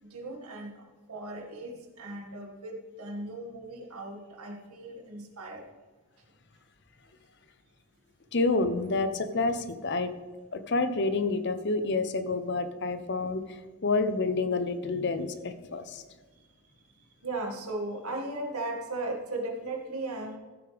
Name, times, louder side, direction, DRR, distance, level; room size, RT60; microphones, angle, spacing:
voice 1, 0.0-5.7 16.9-20.4, right 2 dB, 90° right, 1 dB, 2.1 m, -37 dB
voice 2, 8.3-10.1 10.5-13.4 13.8-16.0, left 3 dB, 50° left, 10 dB, 0.8 m, -28 dB
14.5 x 8.7 x 3.5 m, 1.3 s
head